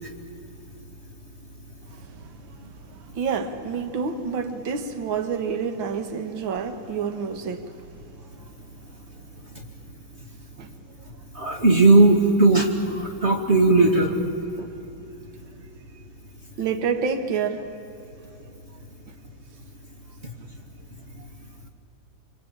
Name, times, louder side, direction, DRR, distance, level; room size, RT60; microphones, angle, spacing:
voice 1, 1.9-7.9 8.2-8.6 9.1-9.3 10.6-10.7 16.6-17.7 19.1-19.2, right 6 dB, 75° right, 2.1 m, -29 dB
voice 2, 11.3-14.2 14.6-14.7, right 2 dB, 35° right, 2.4 m, -17 dB
27.5 x 24.0 x 8.7 m
omnidirectional pair, 2.2 m